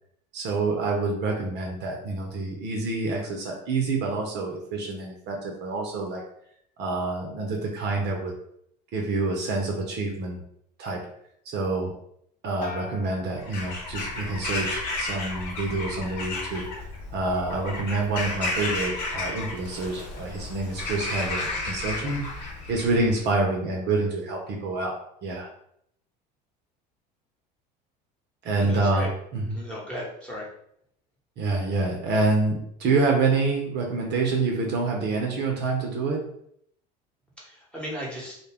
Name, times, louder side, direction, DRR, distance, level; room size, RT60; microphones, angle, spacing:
voice 1, 0.3-6.2 6.8-8.3 8.9-10.4 10.8-11.0 11.5-11.9 12.4-16.6 17.1-25.5 28.4-29.6 31.4-36.2, right 3 dB, 55° right, 1 dB, 0.7 m, -27 dB
sound 1, 12.6-14.3 14.7-15.3, left 5 dB, 40° left, 0.6 m, -42 dB
Bird vocalization bird call bird song / Crow, 13.4-23.3, left 2 dB, 80° left, 0.9 m, -33 dB
voice 2, 28.6-29.1 29.5-30.5 37.4-38.3, equal, 5° left, -5 dB, 1.0 m, -36 dB
2.2 x 2.2 x 3.4 m, 0.70 s
supercardioid pair, 85°, 21 cm